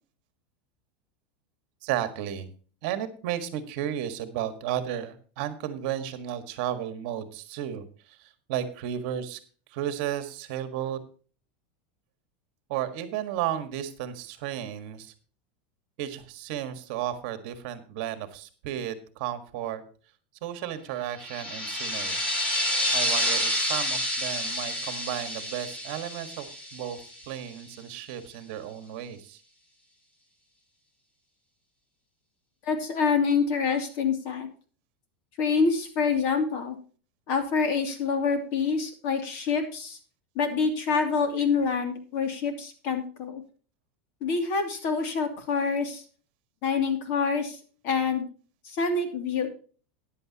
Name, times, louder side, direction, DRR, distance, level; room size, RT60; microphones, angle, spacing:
voice 1, 1.8-2.5 2.8-9.4 9.7-11.0 12.7-15.1 16.0-19.8 20.4-22.2 22.9-26.5 26.7-29.4, right 11 dB, 50° right, 10 dB, 1.6 m, -33 dB
sound 1, 21.2-27.5, left 1 dB, 20° left, 2.7 m, -29 dB
voice 2, 32.6-34.5 35.4-36.8 37.3-40.0 40.3-43.4 44.2-46.0 46.6-47.6 47.8-48.2 48.6-49.5, left 5 dB, 45° left, 6 dB, 2.7 m, -26 dB
14.5 x 10.5 x 2.9 m, 0.39 s
supercardioid pair, 160°, 6 cm